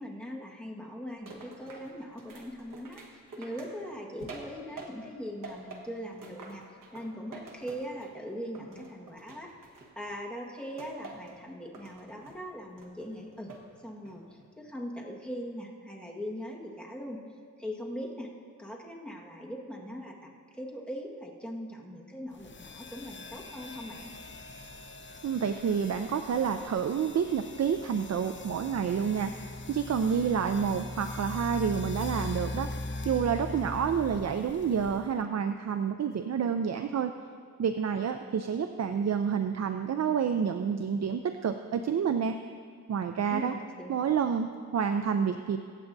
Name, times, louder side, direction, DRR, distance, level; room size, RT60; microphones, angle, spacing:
voice 1, 0.0-9.5 9.9-13.5 13.8-17.2 17.6-18.3 18.6-24.1 43.3-44.3, equal, 5° left, -3 dB, 1.6 m, -41 dB
sound 1, 1.3-5.2 5.4-8.2 8.5-10.2 10.8-11.4 11.7-12.4 12.8-13.7 14.1-14.5, right 3 dB, 85° right, 1.5 m, -48 dB
sound 2, 22.4-35.2, left 2 dB, 35° left, 0.7 m, -41 dB
voice 2, 25.2-29.3 29.7-32.7 33.0-37.1 37.6-42.4 42.9-43.6 43.9-45.6, right 7 dB, 55° right, 7 dB, 0.5 m, -29 dB
23.5 x 8.5 x 2.7 m, 2.1 s
wide cardioid pair, 95°, 31 cm